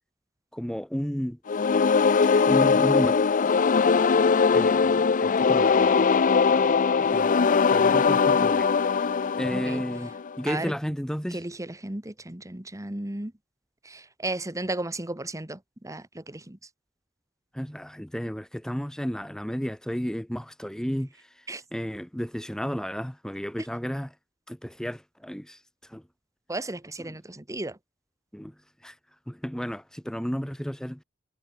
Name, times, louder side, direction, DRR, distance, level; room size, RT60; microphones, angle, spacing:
voice 1, 0.5-1.4 2.5-3.3 4.5-6.1 6.5-9.1 9.4-11.4 17.5-24.1 24.5-26.0 27.1-27.2 28.3-28.5 28.8-29.0 29.3-31.0, equal, 5° left, 0.8 m, -33 dB
sound 1, 1.5-10.4, left 5 dB, 40° left, 0.5 m, -21 dB
voice 2, 9.5-9.8 10.5-10.7 11.3-13.3 13.8-16.6 21.5-21.6 26.5-27.8, right 2 dB, 15° right, 1.4 m, -34 dB
head